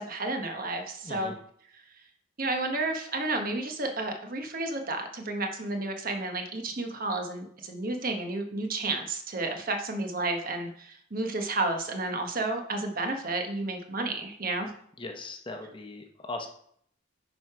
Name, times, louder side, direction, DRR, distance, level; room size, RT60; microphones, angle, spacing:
voice 1, 0.0-1.3 2.4-14.7, right 2 dB, 45° right, 4 dB, 1.1 m, -31 dB
voice 2, 1.0-1.4 15.0-16.5, left 2 dB, 25° left, 3 dB, 0.9 m, -39 dB
9.4 x 4.8 x 4.8 m, 0.65 s
head